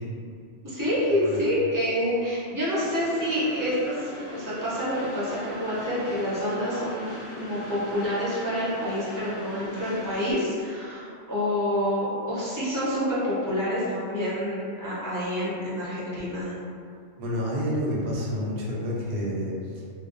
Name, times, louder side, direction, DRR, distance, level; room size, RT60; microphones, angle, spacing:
voice 1, 0.6-16.6, equal, 20° right, -10 dB, 0.6 m, -27 dB
Train, 2.7-10.4, left 1 dB, 60° left, 0.9 m, -40 dB
voice 2, 17.2-19.8, equal, 70° right, -4 dB, 0.8 m, -29 dB
2.4 x 2.1 x 2.5 m, 2.2 s
omnidirectional pair, 1.2 m